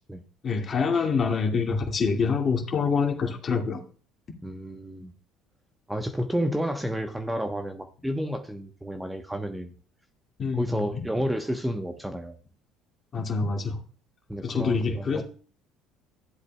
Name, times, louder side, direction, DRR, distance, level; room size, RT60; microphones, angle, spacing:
voice 1, 0.4-3.8 10.4-10.9 13.1-13.8 14.4-15.2, left 5 dB, 40° left, 2 dB, 2.4 m, -26 dB
voice 2, 4.4-5.1 5.9-9.7 10.5-12.3 14.3-15.2, equal, 5° right, 5 dB, 1.1 m, -30 dB
13.5 x 8.1 x 2.4 m, 0.40 s
hypercardioid pair, 65°, 0 cm